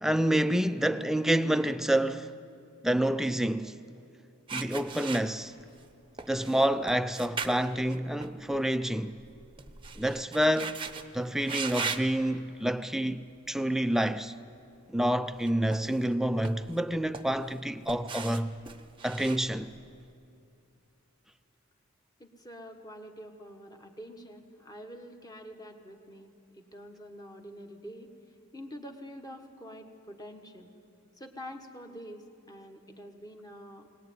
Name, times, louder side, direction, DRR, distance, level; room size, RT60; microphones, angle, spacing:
voice 1, 0.0-2.3 2.8-3.8 4.5-5.5 6.3-9.2 10.0-10.8 11.1-14.4 14.9-18.6 19.0-19.7, right 1 dB, ahead, 0.5 m, -28 dB
sound 1, 4.5-5.8 6.2-8.7 9.0-11.0 11.4-12.1 12.8-13.0 15.3-16.1 16.4-17.6 17.9-20.0, right 5 dB, 25° right, 0.8 m, -38 dB
voice 2, 22.2-28.1 28.5-30.7 31.2-33.9, equal, 20° left, 1.5 m, -46 dB
21.5 x 18.5 x 9.4 m
head